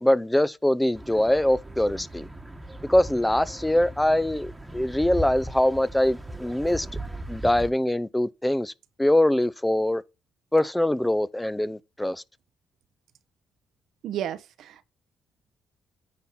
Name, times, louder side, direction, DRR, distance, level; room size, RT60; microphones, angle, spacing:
voice 1, 0.0-2.3 2.9-6.9 7.3-8.7 9.0-10.0 10.5-12.2, left 1 dB, 10° left, 0.5 m, -23 dB
sound 1, 0.9-7.7, right 1 dB, 10° right, 1.3 m, -38 dB
voice 2, 14.0-14.8, right 10 dB, 75° right, 0.8 m, -33 dB
9.5 x 4.3 x 5.9 m
cardioid pair, 90°, 0 cm